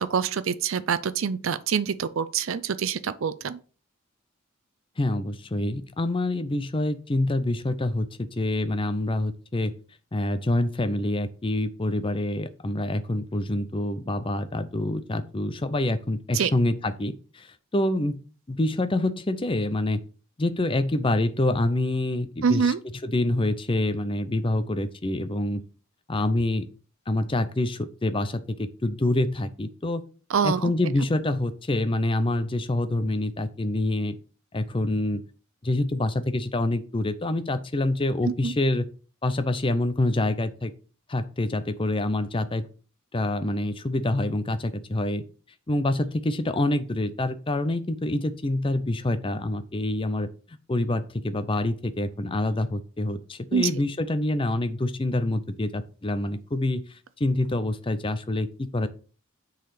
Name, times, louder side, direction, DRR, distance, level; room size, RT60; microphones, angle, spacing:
voice 1, 0.0-3.6 16.3-16.5 22.4-22.8 30.3-30.7 38.2-38.5 53.5-53.7, right 6 dB, 70° right, 0.5 m, -25 dB
voice 2, 5.0-9.7 10.1-18.2 18.5-20.0 20.4-22.7 23.0-25.6 26.1-26.7 27.1-30.0 30.4-34.2 34.5-35.2 35.6-38.9 39.2-40.7 41.1-42.7 43.1-45.2 45.7-50.3 50.7-58.9, left 1 dB, 25° left, 0.6 m, -26 dB
6.7 x 4.1 x 4.9 m
head